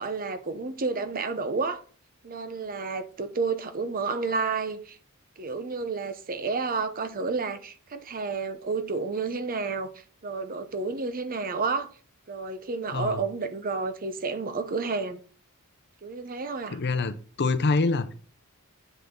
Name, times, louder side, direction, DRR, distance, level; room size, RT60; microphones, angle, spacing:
voice 1, 0.0-1.8 2.2-5.0 5.4-9.9 10.2-11.9 12.3-15.2 16.0-16.8, right 4 dB, 40° right, 0.8 m, -30 dB
voice 2, 12.9-13.2 16.7-18.2, left 3 dB, 50° left, 0.6 m, -26 dB
8.3 x 5.6 x 3.8 m
head